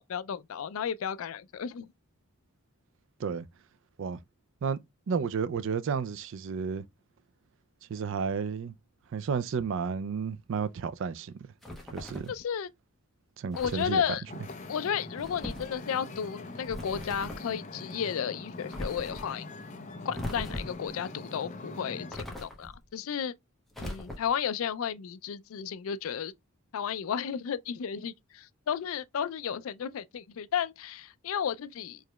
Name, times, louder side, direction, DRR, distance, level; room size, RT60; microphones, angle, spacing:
voice 1, 0.0-1.9 12.3-12.7 13.6-14.2 14.7-19.4 20.0-23.3 23.8-26.3 26.7-32.0, left 8 dB, 70° left, 0.4 m, -33 dB
voice 2, 5.1-6.8 7.9-8.7 9.1-11.4 11.9-12.3 13.4-14.0, right 6 dB, 60° right, 0.3 m, -32 dB
sound 1, 11.6-12.4 13.5-14.0 15.2-15.8 16.6-17.5 18.7-19.3 20.1-20.9 22.1-22.8 23.7-24.4, left 1 dB, ahead, 0.9 m, -39 dB
Wind / Ocean, 14.3-22.2, left 2 dB, 35° left, 0.6 m, -43 dB
4.8 x 3.0 x 2.2 m
head